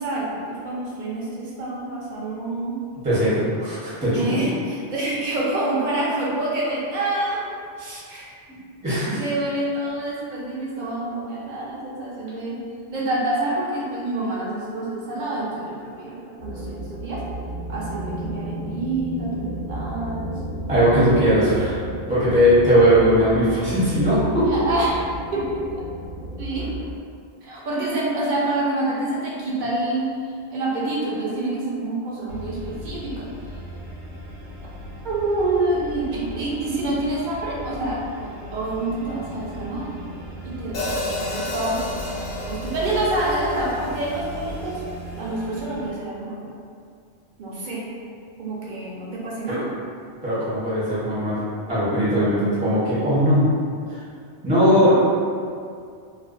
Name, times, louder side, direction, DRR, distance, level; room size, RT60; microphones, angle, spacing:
voice 1, 0.0-2.8 4.1-7.4 7.8-8.3 9.1-12.6 12.9-17.2 17.7-20.4 24.5-25.0 25.3-25.9 26.4-26.7 27.4-33.3 35.0-39.9 40.4-44.8 45.1-46.5 47.4-47.8 48.4-49.7, right 2 dB, 55° right, -5 dB, 0.6 m, -27 dB
voice 2, 3.0-4.3 8.5-9.2 20.7-21.8 22.1-24.6 49.5-49.6 50.2-51.4 51.7-53.5 53.9-54.0 54.4-54.9, equal, 10° right, -11 dB, 0.5 m, -19 dB
sound 1, 16.4-26.9, right 1 dB, 40° left, 0.9 m, -33 dB
sound 2, 32.3-45.9, equal, 90° right, 0.9 m, -37 dB
Hi-hat, 40.7-44.9, left 2 dB, 60° left, 0.5 m, -32 dB
2.4 x 2.1 x 2.4 m, 2.3 s
omnidirectional pair, 1.2 m